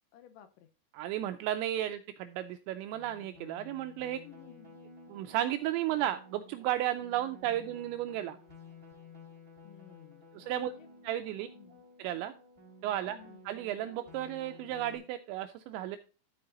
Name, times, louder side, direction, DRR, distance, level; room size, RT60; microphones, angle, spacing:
voice 1, 0.1-0.7 4.2-4.8 9.6-10.3 10.6-10.9 11.5-11.8 13.1-13.4, left 10 dB, 80° left, 9 dB, 2.8 m, -55 dB
voice 2, 0.9-4.2 5.1-8.4 10.3-10.7 11.0-11.5 12.0-12.3 12.8-13.2 13.5-16.0, right 12 dB, 85° right, 8 dB, 2.6 m, -34 dB
sound 1, 2.9-15.0, left 3 dB, 5° right, 2.7 m, -54 dB
13.0 x 4.6 x 3.8 m, 0.35 s
omnidirectional pair, 5.6 m